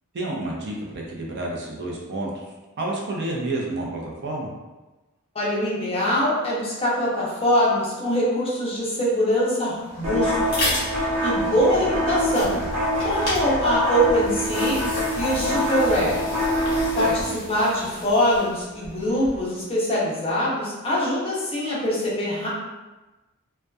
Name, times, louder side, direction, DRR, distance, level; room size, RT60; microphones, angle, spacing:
voice 1, 0.1-2.4 2.8-4.5 16.8-17.1, right 2 dB, 50° right, -2 dB, 0.5 m, -30 dB
voice 2, 5.3-10.7 11.0-12.6 13.0-14.8 15.2-16.3 17.0-22.5, equal, 25° left, -5 dB, 0.6 m, -23 dB
sound 1, 9.7-19.6, left 1 dB, 45° left, 1.0 m, -34 dB
sound 2, 10.0-17.2, equal, 85° right, 0.8 m, -25 dB
2.6 x 2.2 x 2.2 m, 1.1 s
head